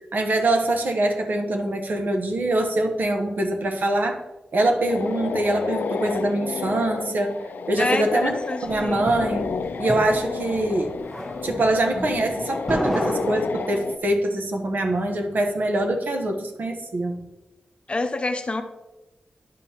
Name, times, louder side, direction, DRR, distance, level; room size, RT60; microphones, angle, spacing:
voice 1, 0.1-4.2 4.5-7.4 7.7-8.3 8.6-9.4 9.8-10.9 11.4-17.2, right 1 dB, 70° right, 3 dB, 1.1 m, -24 dB
sound 1, 4.9-14.0, left 5 dB, 75° left, 0.4 m, -31 dB
voice 2, 7.8-9.0 17.9-18.6, left 2 dB, 35° left, 8 dB, 0.7 m, -27 dB
sound 2, 8.2-14.1, equal, ahead, 1.2 m, -32 dB
10.5 x 5.5 x 2.9 m, 1.0 s
cardioid pair, 65°, 3 cm